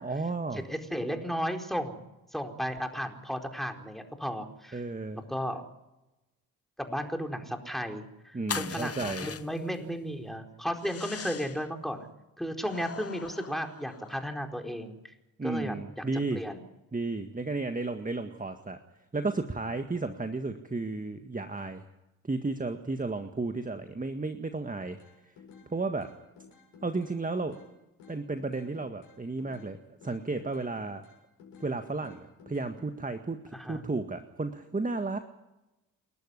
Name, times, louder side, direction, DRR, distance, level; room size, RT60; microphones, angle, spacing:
voice 1, 0.0-0.6 4.7-5.2 8.3-9.3 15.4-16.4 16.9-18.8 19.1-21.8 22.2-25.0 25.2-25.3 25.7-26.1 26.8-27.6 28.1-29.8 30.0-31.0 31.6-35.2, right 3 dB, 20° right, 7 dB, 1.8 m, -33 dB
voice 2, 0.5-2.0 2.3-4.8 5.1-5.6 6.8-12.1 12.4-15.1 15.4-16.0 16.3-16.6 33.5-33.8, equal, ahead, 4 dB, 4.4 m, -34 dB
sound 1, 8.5-9.8 10.8-11.7 12.6-14.3, left 7 dB, 35° left, 1.1 m, -40 dB
sound 2, 25.0-25.7 26.0-27.7 28.0-29.7 30.0-31.7 32.0-32.9, left 5 dB, 75° left, 7.9 m, -53 dB
29.0 x 12.0 x 9.9 m, 0.99 s
hypercardioid pair, 40°, 42 cm